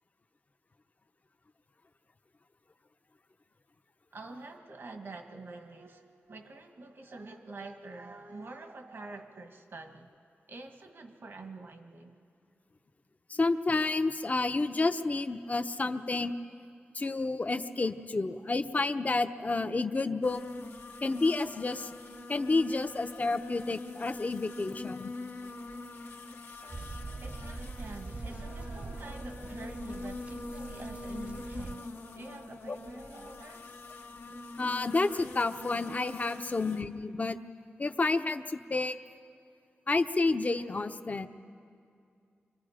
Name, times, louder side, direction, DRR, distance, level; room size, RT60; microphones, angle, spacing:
voice 1, 4.1-10.1 10.5-12.2 26.6-33.6, right 3 dB, 70° right, 5 dB, 1.7 m, -47 dB
voice 2, 13.3-16.4 16.9-20.4 21.0-21.9 22.3-25.1 32.7-32.8 34.6-37.4 37.8-39.0 39.9-41.3, left 3 dB, 40° left, 9 dB, 0.8 m, -30 dB
sound 1, 20.2-36.8, left 3 dB, 75° left, 1.2 m, -44 dB
sound 2, 26.7-31.8, right 3 dB, 30° right, 0.5 m, -43 dB
29.5 x 25.0 x 5.1 m, 2.4 s
wide cardioid pair, 85°, 4 cm